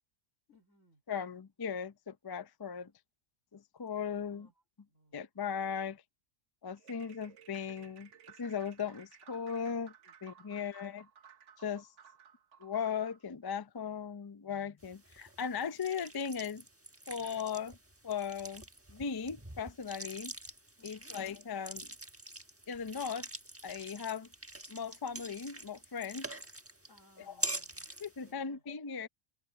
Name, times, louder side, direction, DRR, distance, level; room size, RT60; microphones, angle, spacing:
voice 1, 0.5-1.0 4.3-4.5 4.9-5.2 10.0-10.8 20.8-21.1 26.9-27.9 28.2-28.6, left 1 dB, 85° left, 4.0 m, -66 dB
voice 2, 1.1-2.9 3.5-4.5 5.1-6.0 6.6-8.1 8.4-9.9 10.2-11.1 11.6-11.9 12.6-16.6 17.1-17.8 18.0-18.6 18.9-20.3 20.8-21.9 22.7-23.3 23.6-24.3 24.7-26.3 27.3-27.4 28.0-29.1, left 7 dB, 30° left, 0.4 m, -38 dB
sound 1, 6.8-13.2, right 8 dB, 70° right, 1.4 m, -58 dB
sound 2, 14.8-28.3, right 1 dB, 10° right, 1.1 m, -45 dB
omnidirectional pair, 1.3 m